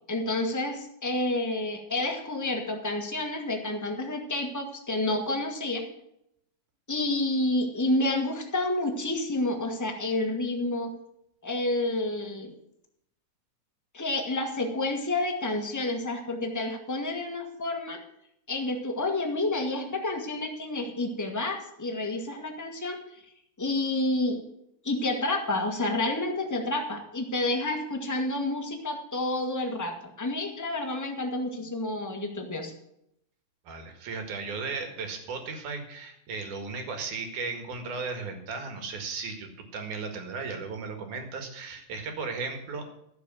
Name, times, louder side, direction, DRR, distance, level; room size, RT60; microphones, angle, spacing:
voice 1, 0.1-5.8 6.9-10.9 11.4-12.5 13.9-18.0 18.5-23.2 23.6-24.4 24.8-32.7, left 2 dB, 15° left, 2 dB, 0.6 m, -29 dB
voice 2, 33.7-42.8, right 4 dB, 85° right, 5 dB, 3.4 m, -36 dB
13.0 x 7.2 x 7.6 m, 0.77 s
omnidirectional pair, 3.4 m